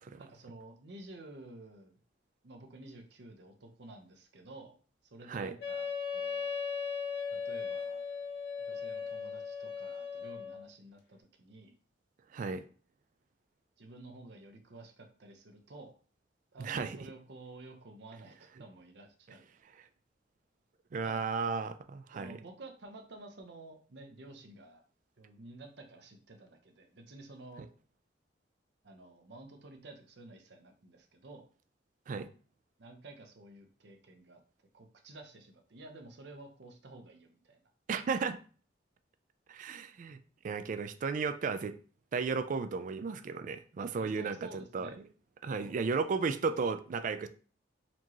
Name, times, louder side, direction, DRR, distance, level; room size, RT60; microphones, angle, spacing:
voice 1, 0.1-2.0 2.4-4.7 5.0-6.5 7.3-8.0 8.6-11.8 13.8-15.9 16.5-19.5 21.0-21.2 22.1-24.8 25.2-27.6 28.8-31.5 32.8-34.4 34.7-37.6 44.0-45.0 45.6-45.8, right 2 dB, 65° right, 0.7 m, -51 dB
Wind instrument woodwind instrument, 5.6-10.7, left 6 dB, 60° left, 0.8 m, -37 dB
voice 2, 12.3-12.6 16.6-17.0 20.9-22.4 32.1-32.3 37.9-38.4 39.5-41.7 42.1-44.4 44.7-44.9 45.4-47.3, right 5 dB, 45° right, 0.3 m, -34 dB
4.3 x 2.8 x 3.0 m
head